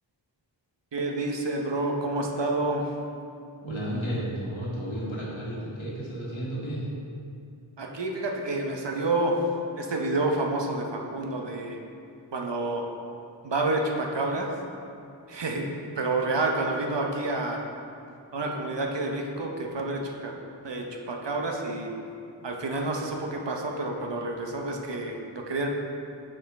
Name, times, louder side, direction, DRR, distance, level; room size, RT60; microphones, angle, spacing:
voice 1, 0.9-2.9 7.8-9.4 9.8-11.8 12.3-12.8 13.4-14.5 15.3-15.7 16.0-17.6 18.3-20.3 20.6-21.9 22.4-25.7, right 2 dB, 65° right, 1 dB, 0.8 m, -29 dB
voice 2, 3.6-6.9, equal, 85° left, -6 dB, 1.6 m, -32 dB
5.6 x 5.5 x 4.0 m, 2.5 s
wide cardioid pair, 40°, 46 cm